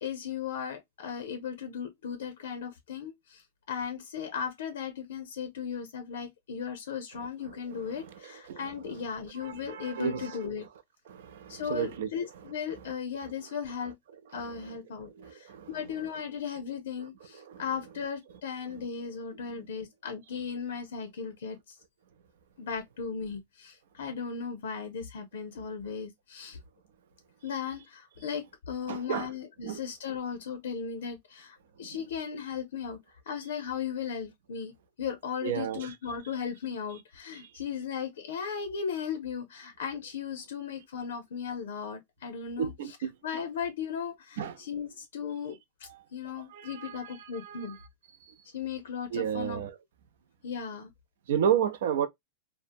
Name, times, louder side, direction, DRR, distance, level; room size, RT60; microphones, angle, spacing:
voice 1, 0.0-3.4 3.7-10.7 11.5-14.0 14.3-21.6 22.6-26.6 27.4-33.0 33.3-47.8 48.5-49.6 50.4-50.9, left 7 dB, 90° left, 0.6 m, -37 dB
voice 2, 9.4-10.3 11.1-12.1 15.2-15.7 28.9-29.3 29.6-29.8 35.4-35.8 42.6-42.9 44.4-44.5 46.6-46.9 47.5-47.6 49.1-49.7 51.3-52.1, right 8 dB, 70° right, 0.5 m, -30 dB
2.7 x 2.0 x 2.5 m
supercardioid pair, 160°, 0 cm